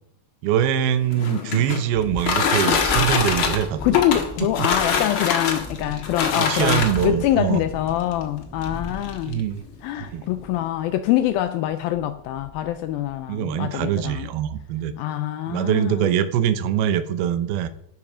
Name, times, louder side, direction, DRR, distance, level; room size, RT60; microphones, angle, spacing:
voice 1, 0.4-4.0 4.6-4.7 6.3-7.6 9.2-9.6 10.0-10.2 13.3-14.9 15.5-17.7, right 10 dB, 75° right, 2.8 m, -23 dB
Freezer Ice Bucket, 1.0-7.2 8.1-8.2 8.6-8.7 9.0-9.4, left 5 dB, 50° left, 1.7 m, -24 dB
Thunderstorm, 1.9-13.3, left 1 dB, 10° left, 0.6 m, -38 dB
voice 2, 3.8-9.4 9.8-14.3 15.0-16.2, left 13 dB, 80° left, 2.3 m, -24 dB
11.5 x 11.5 x 5.0 m
omnidirectional pair, 4.6 m